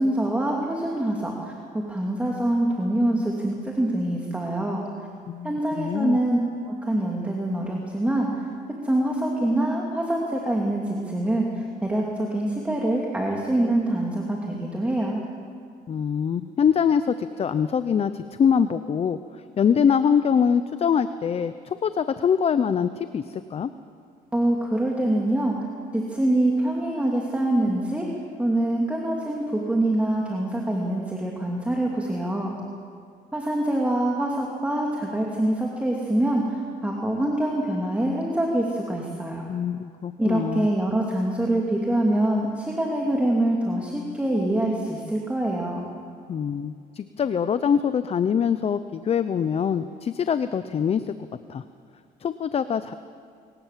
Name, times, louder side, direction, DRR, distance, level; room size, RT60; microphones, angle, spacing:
voice 1, 0.0-4.9 5.4-6.4 6.7-8.5 8.8-15.2 24.3-25.6 25.9-28.1 28.4-32.6 33.3-39.5 40.2-45.8, right 1 dB, 10° right, -1 dB, 2.6 m, -25 dB
voice 2, 5.3-6.2 15.9-19.2 19.6-23.7 39.5-40.7 46.3-51.1 51.5-51.6 52.2-53.0, left 7 dB, 35° left, 12 dB, 0.7 m, -24 dB
24.0 x 18.5 x 7.5 m, 2.2 s
cardioid pair, 110°, 17 cm